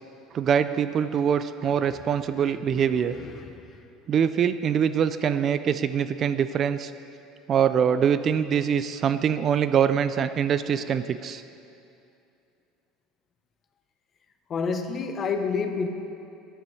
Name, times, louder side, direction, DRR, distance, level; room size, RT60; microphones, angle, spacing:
voice 1, 0.3-3.1 4.1-6.9 7.5-11.4, right 8 dB, 40° right, 12 dB, 0.4 m, -24 dB
voice 2, 14.5-15.9, left 5 dB, 35° left, 7 dB, 0.9 m, -27 dB
15.0 x 11.0 x 3.3 m, 2.6 s
supercardioid pair, 120°, 0 cm